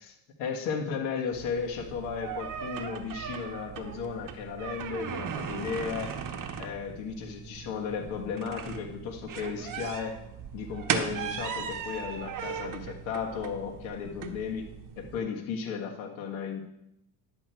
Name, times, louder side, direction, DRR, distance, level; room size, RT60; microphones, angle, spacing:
voice 1, 0.0-6.1 6.6-10.2 10.5-14.7 15.0-16.6, left 6 dB, 85° left, 1 dB, 1.7 m, -35 dB
sound 1, 1.3-15.2, right 7 dB, 45° right, 1.3 m, -37 dB
11.5 x 8.2 x 4.5 m, 0.83 s
cardioid pair, 105°, 46 cm